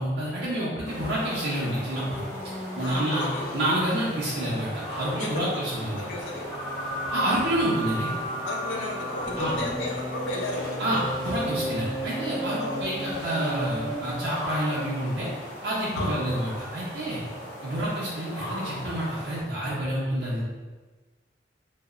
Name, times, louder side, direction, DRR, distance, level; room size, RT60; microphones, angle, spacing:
voice 1, 0.0-2.3 2.8-3.3 3.5-6.0 7.1-8.1 9.4-9.6 10.8-15.3 15.6-17.2 17.6-20.4, right 1 dB, 65° right, -7 dB, 0.5 m, -28 dB
sound 1, 0.8-19.4, left 1 dB, 35° left, 0.9 m, -38 dB
sound 2, 1.7-14.5, right 1 dB, ahead, 0.6 m, -35 dB
voice 2, 2.8-3.5 5.2-5.5 6.0-6.5 8.4-11.0 12.6-12.8 15.9-16.1, left 2 dB, 80° left, 0 dB, 0.5 m, -33 dB
2.8 x 2.0 x 2.3 m, 1.3 s
head